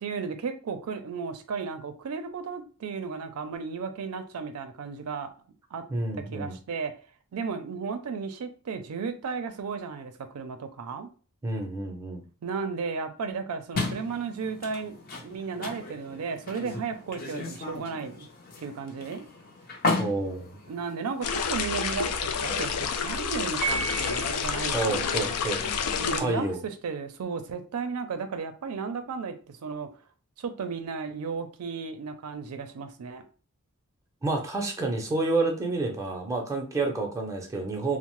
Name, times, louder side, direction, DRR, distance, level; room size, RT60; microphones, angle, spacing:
voice 1, 0.0-5.3 5.7-5.8 6.3-6.9 7.3-11.1 12.4-14.9 15.2-18.3 18.6-19.3 20.7-25.4 26.0-29.9 30.4-33.2, right 5 dB, 85° right, 0.4 m, -34 dB
voice 2, 5.9-6.6 11.4-12.2 20.0-20.6 24.7-25.6 26.2-26.6 34.2-38.0, right 2 dB, 15° right, 0.5 m, -29 dB
sound 1, 13.7-21.5, left 3 dB, 45° left, 0.6 m, -35 dB
sound 2, 21.2-26.2, left 6 dB, 90° left, 0.4 m, -29 dB
Piano, 23.6-24.7, right 5 dB, 65° left, 0.9 m, -32 dB
2.9 x 2.0 x 2.9 m
head